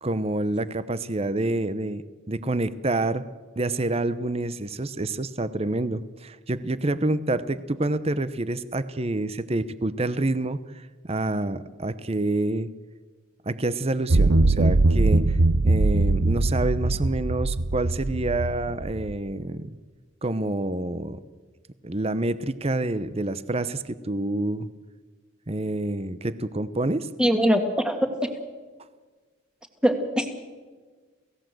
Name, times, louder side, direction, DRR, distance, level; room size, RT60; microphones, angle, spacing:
voice 1, 0.0-3.2 3.6-12.7 13.5-15.4 15.6-19.7 20.2-21.2 21.8-24.7 25.5-27.1, right 2 dB, 30° right, 14 dB, 0.8 m, -27 dB
sound 1, 14.1-19.2, right 2 dB, 90° right, 0.9 m, -21 dB
voice 2, 27.2-28.1 29.8-30.3, equal, 5° right, 5 dB, 2.1 m, -22 dB
28.5 x 17.0 x 7.8 m, 1.4 s
head